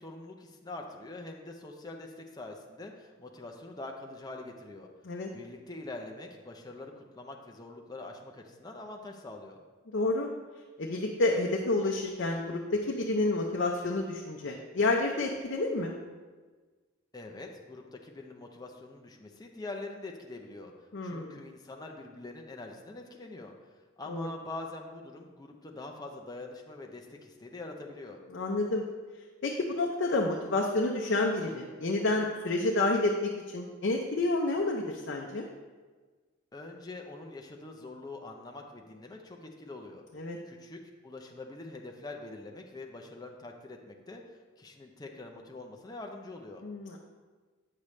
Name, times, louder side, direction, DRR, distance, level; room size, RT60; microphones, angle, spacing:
voice 1, 0.0-4.9 5.3-9.6 17.1-20.7 21.0-23.5 24.0-28.2 36.5-40.0 40.5-44.2 44.6-46.6, left 2 dB, 20° left, 2 dB, 0.6 m, -44 dB
voice 2, 9.9-10.3 10.8-15.9 20.9-21.4 24.1-24.3 28.3-28.8 29.4-35.5 40.2-40.4 46.6-47.0, left 2 dB, 60° left, 0 dB, 0.6 m, -29 dB
8.5 x 6.6 x 3.2 m, 1.4 s
head